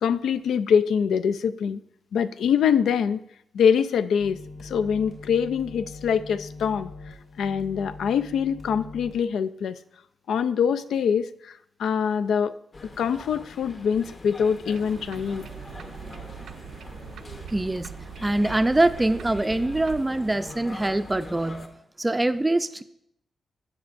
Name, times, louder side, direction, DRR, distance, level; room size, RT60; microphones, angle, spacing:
voice 1, 0.0-1.8 2.1-3.2 3.5-9.8 10.3-12.5 13.0-15.5, left 7 dB, 90° left, 12 dB, 0.3 m, -24 dB
sound 1, 4.2-9.2, left 3 dB, 70° left, 3.2 m, -42 dB
sound 2, 12.7-21.7, left 2 dB, 40° left, 0.9 m, -43 dB
sound 3, 14.7-20.0, right 8 dB, 85° right, 0.5 m, -41 dB
voice 2, 17.5-18.0 18.2-21.7 22.0-22.8, right 2 dB, 15° right, 11 dB, 0.4 m, -24 dB
16.0 x 6.0 x 2.5 m, 0.76 s
cardioid pair, 110°, 0 cm